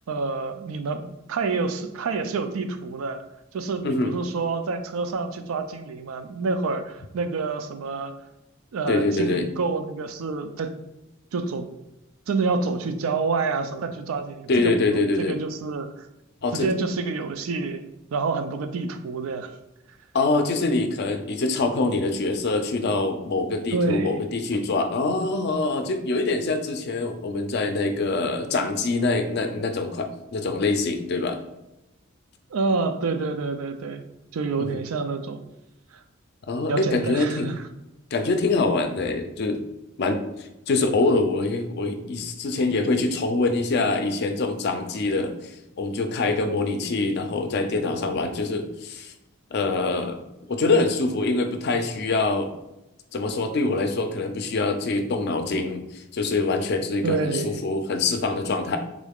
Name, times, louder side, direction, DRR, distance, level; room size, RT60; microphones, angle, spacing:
voice 1, 0.1-3.2 3.5-8.1 8.7-10.7 11.3-11.7 12.3-15.9 16.5-17.8 18.1-19.5 23.7-24.2 32.5-34.0 34.3-35.4 36.7-37.6 57.0-57.6, right 4 dB, 85° right, 8 dB, 0.4 m, -28 dB
voice 2, 8.9-9.5 14.5-15.4 16.4-16.7 20.1-31.4 34.6-34.8 36.5-37.5 38.1-39.7 40.0-40.2 40.7-49.1 49.5-50.2 50.5-52.5 53.1-58.8, left 3 dB, 50° left, 6 dB, 0.4 m, -24 dB
3.6 x 2.3 x 3.5 m, 0.94 s
head